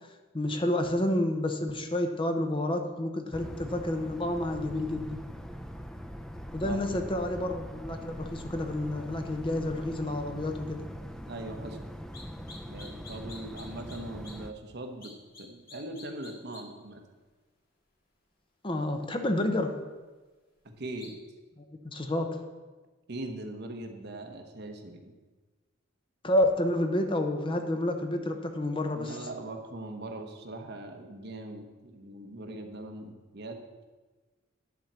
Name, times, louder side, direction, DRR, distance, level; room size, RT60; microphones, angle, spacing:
voice 1, 0.3-5.2 6.5-10.8 18.6-19.7 21.8-22.4 26.2-29.2, left 1 dB, 25° left, 5 dB, 0.8 m, -29 dB
sound 1, 3.3-14.5, equal, 5° left, 0.4 m, -42 dB
voice 2, 6.6-7.3 11.3-11.9 12.4-15.1 15.4-17.0 20.8-21.2 23.1-25.1 28.9-33.6, right 2 dB, 55° right, 4 dB, 1.1 m, -41 dB
sound 2, 12.1-12.2 12.5-14.0 14.2-14.3 15.0-15.4 15.7-16.6 21.0-21.1, left 3 dB, 50° left, 2.1 m, -47 dB
11.0 x 4.4 x 7.4 m, 1.3 s
head